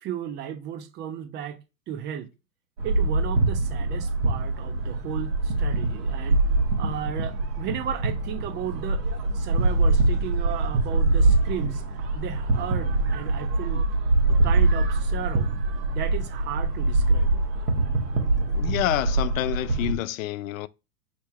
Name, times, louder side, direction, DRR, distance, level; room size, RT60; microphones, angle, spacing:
voice 1, 0.0-2.3 2.8-6.4 6.8-9.0 9.3-11.8 12.1-13.8 14.3-15.5 15.9-17.4, right 9 dB, 20° right, 0.7 m, -35 dB
sound 1, 2.8-19.9, right 2 dB, 75° right, 1.6 m, -24 dB
voice 2, 18.5-20.7, left 15 dB, 60° left, 0.5 m, -28 dB
3.5 x 2.8 x 4.6 m
hypercardioid pair, 120°, 48 cm